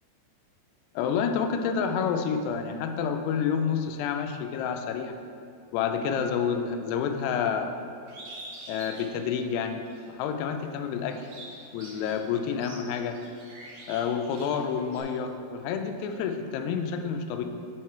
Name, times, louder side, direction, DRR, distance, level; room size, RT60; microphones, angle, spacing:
voice 1, 1.0-5.2 5.7-7.7 8.7-9.8 10.1-11.3 11.7-13.2 13.9-17.4, left 7 dB, 85° left, 6 dB, 2.6 m, -29 dB
Bird, 8.1-10.1 10.5-15.0, right 2 dB, 65° right, 1.7 m, -46 dB
7.8 x 4.8 x 4.5 m, 2.6 s
omnidirectional pair, 4.8 m